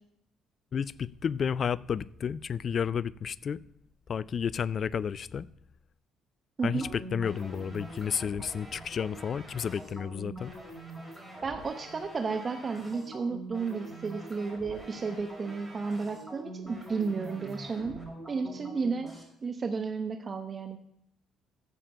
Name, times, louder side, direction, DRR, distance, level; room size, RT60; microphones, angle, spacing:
voice 1, 0.7-3.6 4.1-5.5 6.6-10.5, left 7 dB, 50° left, 0.4 m, -31 dB
sound 1, 6.6-19.2, right 1 dB, 5° right, 5.8 m, -45 dB
voice 2, 11.4-18.0 18.3-19.1 19.4-20.8, right 4 dB, 40° right, 1.0 m, -33 dB
13.5 x 7.6 x 5.6 m
supercardioid pair, 60°, 0 cm